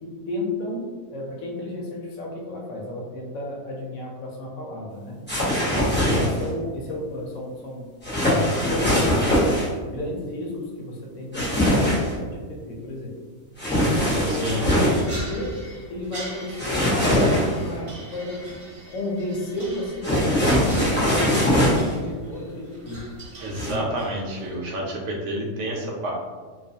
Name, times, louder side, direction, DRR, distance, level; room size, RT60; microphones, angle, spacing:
voice 1, 0.0-5.2 6.1-7.9 8.6-9.3 9.9-13.1 13.9-15.5 15.9-18.4 18.9-21.4 21.7-23.1 23.7-23.9, left 1 dB, 85° left, -2 dB, 1.0 m, -33 dB
sound 1, 5.3-6.5 8.0-9.7 11.3-12.1 13.6-15.0 16.6-17.7 20.0-21.9 23.5-23.7, equal, 10° left, 0.6 m, -21 dB
voice 2, 5.9-6.3 14.3-14.7 23.4-26.1, right 1 dB, 65° right, -1 dB, 0.9 m, -29 dB
sound 2, 15.0-24.7, right 1 dB, 35° right, 0.8 m, -40 dB
2.4 x 2.3 x 2.6 m, 1.5 s
omnidirectional pair, 1.4 m